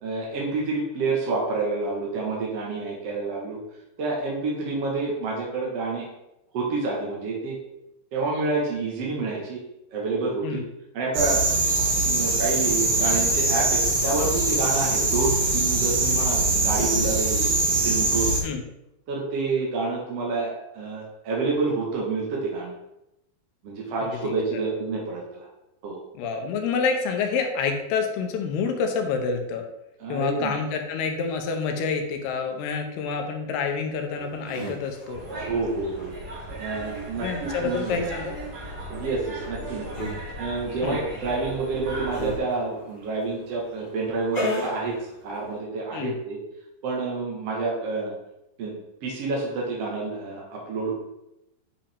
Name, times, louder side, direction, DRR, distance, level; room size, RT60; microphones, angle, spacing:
voice 1, 0.0-3.6 4.0-6.1 6.5-7.6 8.1-9.6 9.9-10.6 10.9-11.4 12.0-17.5 17.8-18.3 19.1-22.7 23.6-25.5 25.8-26.0 30.0-30.5 35.0-36.1 36.6-37.9 38.9-40.1 40.4-46.4 46.8-48.1 48.6-50.9, right 3 dB, 65° right, -3 dB, 1.5 m, -28 dB
sound 1, 11.1-18.4, right 2 dB, 85° right, 3.9 m, -23 dB
voice 2, 24.0-24.6 26.2-29.6 30.1-35.2 37.2-38.4 40.8-41.0 45.9-46.2, left 5 dB, 80° left, 4 dB, 2.8 m, -28 dB
sound 2, 34.1-45.6, left 1 dB, 60° left, 0.4 m, -38 dB
sound 3, 35.1-42.4, right 1 dB, 45° right, 3.6 m, -37 dB
8.6 x 5.5 x 3.5 m, 0.87 s
omnidirectional pair, 4.8 m